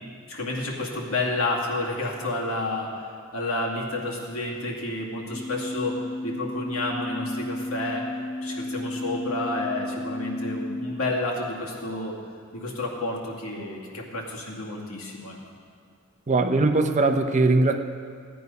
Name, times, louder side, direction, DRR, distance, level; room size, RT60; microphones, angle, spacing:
voice 1, 0.3-8.1 8.4-12.2 12.5-15.4, left 2 dB, 80° left, -3 dB, 2.3 m, -30 dB
sound 1, 5.3-11.0, left 1 dB, ahead, 1.3 m, -33 dB
voice 2, 16.3-17.8, right 3 dB, 35° right, 7 dB, 0.7 m, -20 dB
15.0 x 9.4 x 5.4 m, 2.2 s
head